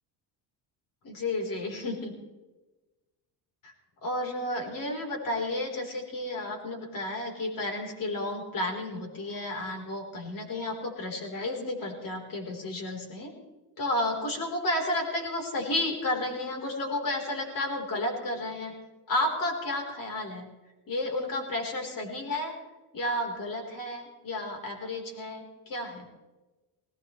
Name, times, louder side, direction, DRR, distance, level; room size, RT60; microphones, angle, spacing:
voice 1, 1.0-2.1 3.6-3.7 4.0-13.3 13.8-18.7 19.1-20.5 20.9-22.5 22.9-26.0, left 1 dB, 50° left, 1 dB, 4.2 m, -32 dB
21.0 x 18.5 x 3.3 m, 1.1 s
cardioid pair, 145°, 42 cm